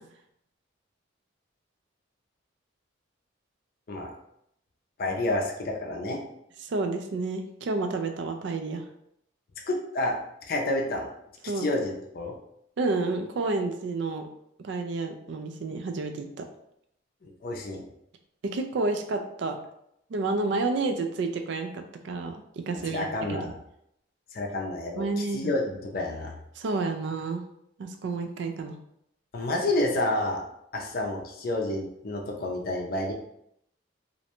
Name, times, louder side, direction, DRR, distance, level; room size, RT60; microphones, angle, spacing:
voice 1, 5.0-6.2 9.7-10.2 10.5-11.1 11.6-12.3 17.2-17.8 22.9-23.5 24.3-25.1 25.3-26.3 29.3-30.4 30.7-33.1, left 1 dB, 50° left, 0 dB, 0.4 m, -29 dB
voice 2, 6.6-8.8 11.5-11.7 12.8-14.3 14.6-16.5 18.4-19.6 20.1-23.5 24.9-25.5 26.6-27.4 27.8-28.7, right 3 dB, 65° right, 5 dB, 0.3 m, -30 dB
2.5 x 2.1 x 2.8 m, 0.75 s
head